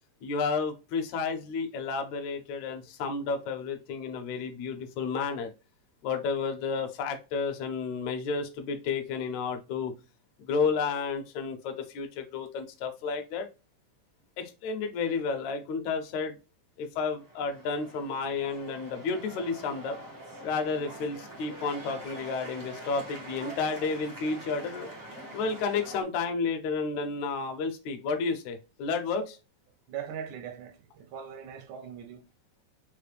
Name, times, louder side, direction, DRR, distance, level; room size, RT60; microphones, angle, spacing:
voice 1, 0.2-5.5 6.0-9.9 10.4-13.5 14.4-16.4 16.8-20.0 20.4-24.9 25.3-29.2, left 4 dB, 75° left, 2.0 m, -31 dB
sound 1, 17.1-26.0, right 1 dB, 60° right, 0.4 m, -44 dB
voice 2, 29.9-32.2, right 8 dB, 85° right, 2.1 m, -40 dB
5.5 x 2.1 x 3.2 m
omnidirectional pair, 3.6 m